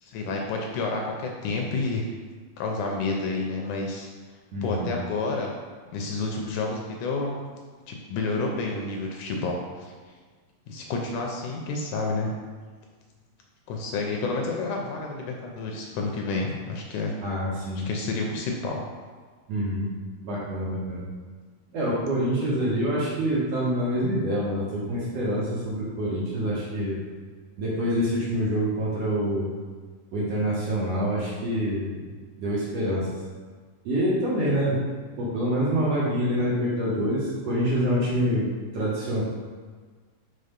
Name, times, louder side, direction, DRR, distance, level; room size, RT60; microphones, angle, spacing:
voice 1, 0.0-2.1 2.6-4.1 4.6-5.5 5.9-7.3 7.9-9.9 10.7-12.4 13.7-17.1 17.9-18.8, left 3 dB, 75° left, 0 dB, 2.0 m, -29 dB
voice 2, 4.5-4.9 17.2-17.9 19.5-19.9 20.2-21.1 21.7-27.0 27.6-29.5 30.1-32.0 32.4-33.1 33.8-34.8 35.2-39.2, equal, 60° right, -7 dB, 2.0 m, -26 dB
5.4 x 4.1 x 5.1 m, 1.5 s
omnidirectional pair, 3.9 m